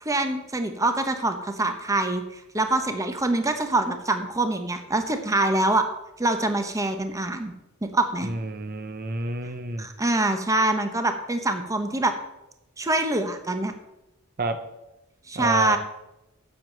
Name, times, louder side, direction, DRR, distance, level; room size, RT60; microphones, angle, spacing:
voice 1, 0.0-5.8 6.2-7.5 7.8-8.3 9.8-12.1 12.8-13.7 15.3-15.8, right 2 dB, 15° right, 7 dB, 0.9 m, -25 dB
voice 2, 8.3-9.8 14.4-14.6 15.4-15.8, right 2 dB, 45° right, 8 dB, 0.8 m, -29 dB
7.6 x 7.4 x 7.8 m, 0.92 s
head